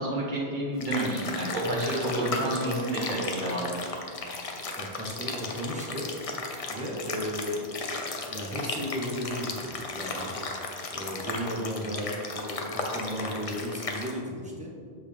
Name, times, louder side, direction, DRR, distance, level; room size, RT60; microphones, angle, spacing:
voice 1, 0.0-4.0, right 1 dB, 45° right, -4 dB, 1.6 m, -29 dB
sound 1, 0.8-14.1, left 3 dB, 40° left, 0.6 m, -35 dB
voice 2, 4.8-6.1 6.7-10.4 10.9-14.7, equal, 5° right, -3 dB, 1.0 m, -35 dB
6.6 x 5.6 x 3.5 m, 2.1 s
omnidirectional pair, 1.1 m